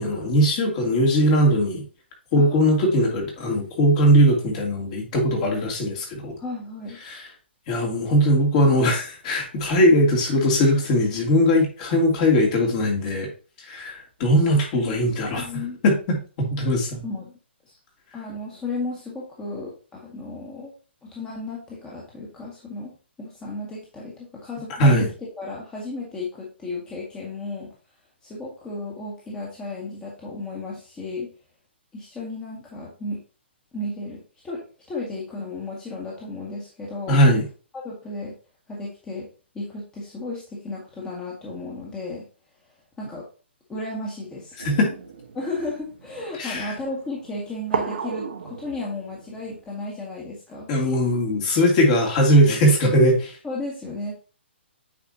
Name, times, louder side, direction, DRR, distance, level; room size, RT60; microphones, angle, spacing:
voice 1, 0.0-1.8 2.3-6.3 7.0-7.3 7.7-13.3 13.6-15.4 15.8-17.0 24.8-25.1 37.1-37.4 44.6-44.9 46.4-46.7 50.7-53.4, equal, 35° left, 1 dB, 2.8 m, -20 dB
voice 2, 2.4-2.9 6.4-7.0 14.7-15.0 15.4-15.8 17.0-17.3 17.7-17.8 18.1-20.7 21.0-25.0 25.4-27.8 28.2-31.3 31.9-33.2 33.7-37.2 37.7-38.3 38.7-39.3 39.5-42.3 43.0-43.3 43.7-44.6 45.3-50.7 53.4-54.2, left 2 dB, 15° left, -4 dB, 1.8 m, -34 dB
sound 1, 44.6-49.6, right 6 dB, 60° right, 1.3 m, -34 dB
8.8 x 5.0 x 2.9 m, 0.36 s
figure-of-eight pair, 130°, 6 cm